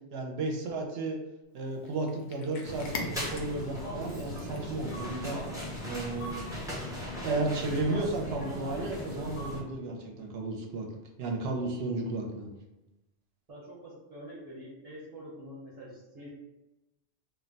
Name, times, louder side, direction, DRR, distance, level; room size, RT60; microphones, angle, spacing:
voice 1, 0.1-1.2 1.5-5.4 5.8-6.9 7.2-10.9 11.2-12.5, right 2 dB, 70° right, 1 dB, 0.8 m, -33 dB
Cat, 1.6-6.8, left 4 dB, 55° left, 0.5 m, -45 dB
sound 1, 2.6-9.6, left 1 dB, 5° right, 0.6 m, -38 dB
voice 2, 13.5-16.3, equal, 35° right, -6 dB, 1.0 m, -46 dB
2.5 x 2.1 x 3.8 m, 0.96 s
omnidirectional pair, 1.1 m